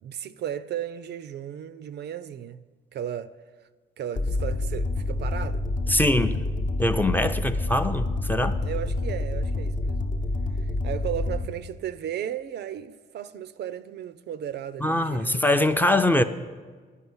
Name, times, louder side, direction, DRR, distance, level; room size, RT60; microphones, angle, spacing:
voice 1, 0.0-2.6 2.9-3.3 4.0-5.6 8.6-10.0 10.6-15.4, right 10 dB, 60° right, 0.4 m, -35 dB
sound 1, 4.2-11.5, left 2 dB, 40° left, 0.7 m, -28 dB
voice 2, 5.9-6.4 6.8-8.6 14.8-16.2, left 1 dB, 10° left, 0.5 m, -23 dB
10.0 x 5.6 x 7.9 m
cardioid pair, 90°, 20 cm